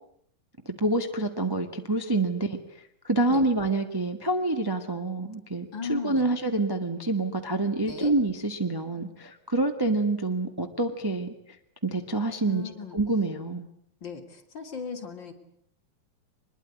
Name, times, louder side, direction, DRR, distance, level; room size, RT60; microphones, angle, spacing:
voice 1, 0.6-2.6 3.0-11.3 11.8-12.6 12.9-13.7, right 2 dB, 20° right, 5 dB, 0.6 m, -27 dB
voice 2, 5.7-6.3 7.8-8.1 12.5-13.0 14.0-15.3, left 6 dB, 35° left, 4 dB, 3.3 m, -37 dB
24.0 x 21.5 x 9.6 m, 0.69 s
omnidirectional pair, 4.1 m